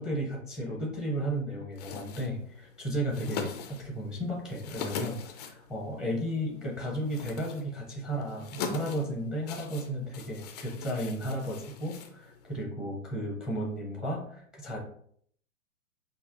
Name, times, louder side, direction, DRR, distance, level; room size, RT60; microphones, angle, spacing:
voice 1, 0.0-14.8, equal, ahead, -2 dB, 0.7 m, -34 dB
sound 1, 1.7-12.6, left 6 dB, 35° left, 0.4 m, -42 dB
5.3 x 2.0 x 2.5 m, 0.63 s
figure-of-eight pair, 110°, 39 cm